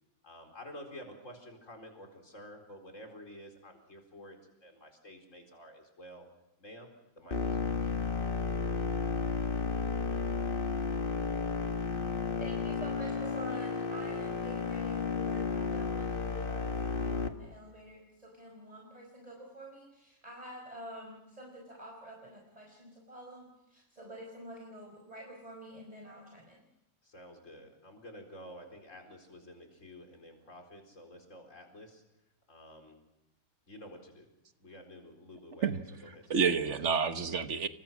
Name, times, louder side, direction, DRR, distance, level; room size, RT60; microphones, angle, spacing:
voice 1, 0.2-6.3 6.6-6.9 7.2-7.7 27.0-32.0 32.5-33.0 33.7-34.3 34.6-35.7 36.1-36.5, equal, 60° left, 3 dB, 4.7 m, -50 dB
sound 1, 7.3-17.3, left 4 dB, 40° left, 1.7 m, -33 dB
voice 2, 12.4-26.6, right 1 dB, 25° right, 0 dB, 4.8 m, -48 dB
voice 3, 35.6-37.7, right 6 dB, 55° right, 9 dB, 1.5 m, -30 dB
28.5 x 24.5 x 6.2 m, 0.91 s
omnidirectional pair, 1.5 m